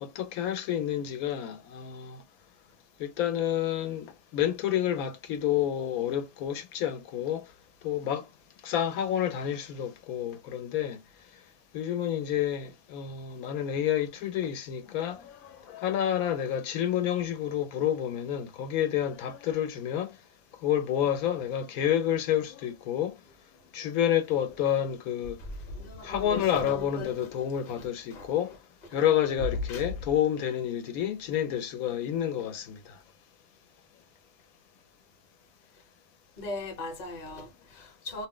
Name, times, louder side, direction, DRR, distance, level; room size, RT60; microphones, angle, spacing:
voice 1, 0.0-2.2 3.0-7.5 7.8-8.3 8.6-11.0 11.7-20.1 20.6-23.2 23.7-25.4 26.0-28.6 28.9-33.0, left 10 dB, 85° left, 1.0 m, -29 dB
voice 2, 15.2-15.7 25.4-28.3 28.9-29.0 29.5-29.9 36.4-38.3, left 2 dB, 35° left, 0.8 m, -39 dB
2.5 x 2.0 x 3.6 m
omnidirectional pair, 1.5 m